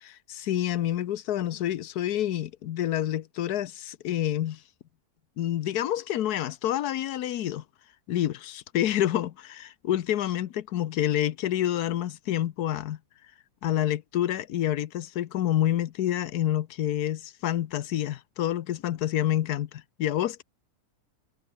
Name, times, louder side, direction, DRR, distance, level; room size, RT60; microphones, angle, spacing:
voice 1, 0.0-4.6 5.4-7.6 8.1-13.0 13.6-20.4, left 12 dB, 80° left, 1.3 m, -28 dB
omnidirectional pair, 1.6 m